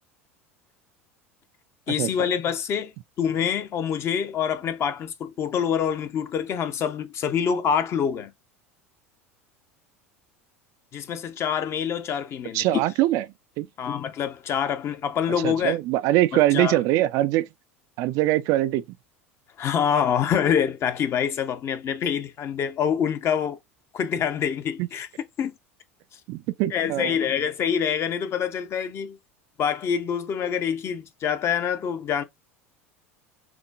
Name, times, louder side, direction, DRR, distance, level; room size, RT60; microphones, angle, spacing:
voice 1, 1.9-8.3 10.9-12.6 13.8-15.8 16.3-16.8 19.6-23.6 23.9-25.1 25.4-25.5 26.7-29.2 29.6-32.2, left 8 dB, 40° left, 0.7 m, -26 dB
voice 2, 12.5-13.2 13.6-13.7 15.4-17.5 18.0-18.8 24.8-24.9 26.3-27.1, right 15 dB, 50° right, 0.3 m, -22 dB
6.0 x 2.1 x 2.4 m
figure-of-eight pair, 75°, 7 cm